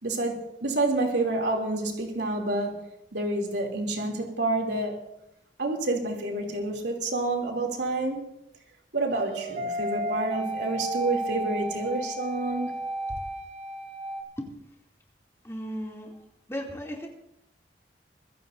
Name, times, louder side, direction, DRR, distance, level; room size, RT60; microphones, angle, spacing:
voice 1, 0.0-2.8 3.1-5.0 5.6-8.2 8.9-12.8, right 2 dB, 85° right, 3.1 m, -28 dB
sound 1, 9.1-14.2, right 1 dB, 40° right, 3.0 m, -33 dB
voice 2, 15.4-16.2 16.5-17.1, equal, 15° left, 2.8 m, -35 dB
24.5 x 16.0 x 2.7 m
head